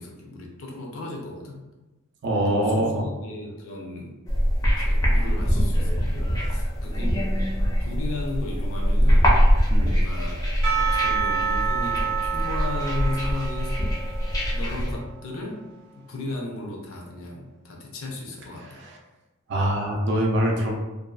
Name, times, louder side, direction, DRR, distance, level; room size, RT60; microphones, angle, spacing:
voice 1, 0.0-1.6 2.5-4.1 4.8-7.2 7.8-9.3 9.8-10.4 10.7-13.7 14.5-15.7 15.9-18.8, left 2 dB, 80° left, 0 dB, 0.6 m, -35 dB
voice 2, 2.2-3.0 9.7-9.9 18.7-19.0 19.5-20.8, right 1 dB, 55° right, 0 dB, 0.4 m, -24 dB
sound 1, 4.3-14.9, equal, 15° left, 0.4 m, -23 dB
Percussion / Church bell, 10.6-15.7, right 6 dB, 25° right, 0.8 m, -29 dB
2.6 x 2.3 x 2.3 m, 1.1 s
head